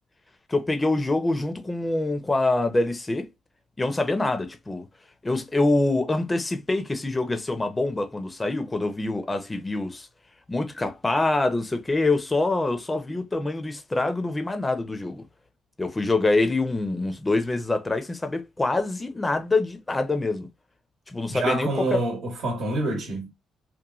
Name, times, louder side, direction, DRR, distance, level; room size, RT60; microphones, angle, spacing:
voice 1, 0.5-3.3 3.8-4.9 5.2-10.1 10.5-15.3 15.8-20.5 21.1-22.0, left 2 dB, 20° left, 0.5 m, -25 dB
voice 2, 21.3-23.3, right 2 dB, 70° right, 0.9 m, -27 dB
3.0 x 2.1 x 2.3 m
cardioid pair, 90°, 0 cm